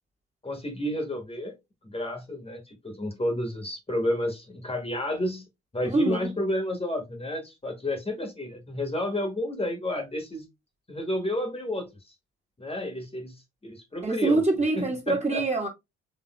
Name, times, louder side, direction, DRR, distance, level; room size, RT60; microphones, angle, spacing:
voice 1, 0.4-1.5 1.8-5.4 5.7-10.4 10.9-11.9 12.6-13.3 13.6-14.4 14.7-15.4, left 1 dB, 20° left, 1.4 m, -31 dB
voice 2, 5.9-6.3 14.0-15.7, right 3 dB, 20° right, 1.5 m, -25 dB
4.1 x 3.5 x 2.2 m
figure-of-eight pair, 40°, 32 cm